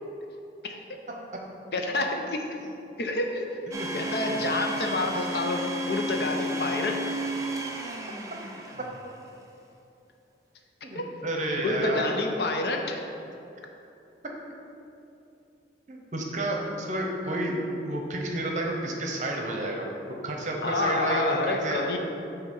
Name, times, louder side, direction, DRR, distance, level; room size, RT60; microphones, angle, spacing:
voice 1, 1.7-2.4 3.0-3.4 3.9-7.0 10.9-11.0 11.6-13.0 20.6-22.0, left 2 dB, 65° left, 2 dB, 0.6 m, -28 dB
Domestic sounds home sounds, 3.7-9.2, right 1 dB, 20° right, 0.5 m, -33 dB
voice 2, 10.8-12.1 15.9-17.6 17.9-19.8 20.1-21.8, right 1 dB, 40° right, 0 dB, 0.8 m, -30 dB
8.0 x 2.9 x 5.4 m, 2.7 s
head